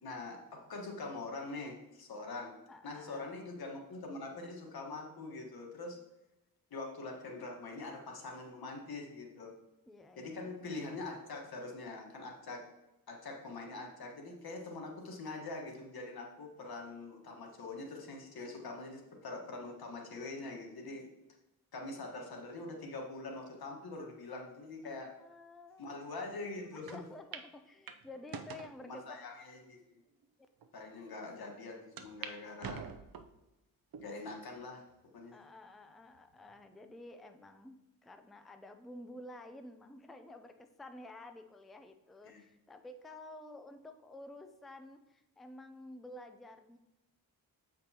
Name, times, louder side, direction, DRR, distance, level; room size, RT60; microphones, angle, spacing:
voice 1, 0.0-2.5 2.8-6.0 6.7-9.5 10.2-12.6 13.1-21.0 21.7-25.1 25.8-27.0 28.8-30.0 30.7-32.8 34.0-34.9 35.1-35.4 42.2-42.4, left 3 dB, 85° left, 1 dB, 1.4 m, -44 dB
voice 2, 2.7-3.3 9.9-10.5 24.8-25.9 26.7-29.2 35.3-46.8, left 1 dB, ahead, 7 dB, 0.4 m, -51 dB
sound 1, 26.9-27.0 27.3-27.5 27.9-28.7 29.4-29.5 30.2-30.3 30.6-30.7 32.0-32.3 32.6-33.4 33.9-34.4 34.9-35.0 36.1-36.6, right 6 dB, 75° right, 0.6 m, -45 dB
7.8 x 5.2 x 2.8 m, 0.96 s
wide cardioid pair, 125°, 36 cm